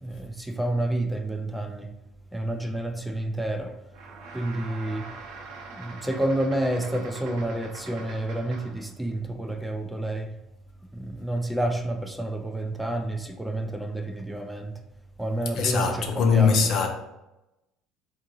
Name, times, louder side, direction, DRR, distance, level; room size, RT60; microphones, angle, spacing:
voice 1, 0.0-2.0 2.3-3.8 4.3-5.1 5.7-10.3 10.9-14.8 15.2-16.6, right 1 dB, 5° right, 0.5 m, -29 dB
sound 1, 3.9-8.9, right 4 dB, 65° right, 0.8 m, -43 dB
voice 2, 15.6-16.9, left 6 dB, 60° left, 0.7 m, -21 dB
3.5 x 2.7 x 4.5 m
hypercardioid pair, 70°, 0 cm